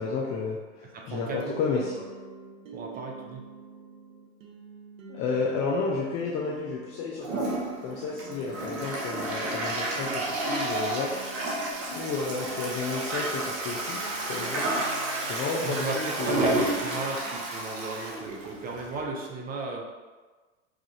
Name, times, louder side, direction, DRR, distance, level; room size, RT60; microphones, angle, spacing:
voice 1, 0.0-2.0 5.1-11.2 11.9-14.7 15.2-16.6, left 4 dB, 35° left, -3 dB, 0.5 m, -32 dB
voice 2, 0.9-1.4 2.7-3.4 15.6-19.8, right 3 dB, 20° right, 0 dB, 0.6 m, -35 dB
sound 1, 1.2-17.4, right 5 dB, 85° right, 0.7 m, -47 dB
Toilet flush, 7.2-19.0, right 2 dB, 40° right, 1.0 m, -31 dB
4.8 x 2.4 x 2.8 m, 1.3 s
hypercardioid pair, 100°, 39 cm